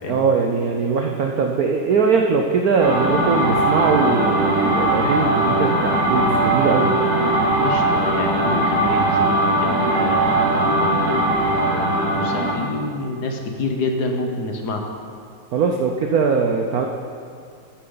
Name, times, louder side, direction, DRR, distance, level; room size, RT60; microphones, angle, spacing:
voice 1, 0.1-7.0 15.5-16.9, right 5 dB, 70° right, 3 dB, 0.8 m, -20 dB
sound 1, 2.8-12.6, right 1 dB, 90° right, 3.7 m, -19 dB
voice 2, 7.6-14.9, left 3 dB, 60° left, 3 dB, 1.3 m, -28 dB
13.0 x 9.3 x 3.9 m, 2.3 s
omnidirectional pair, 2.3 m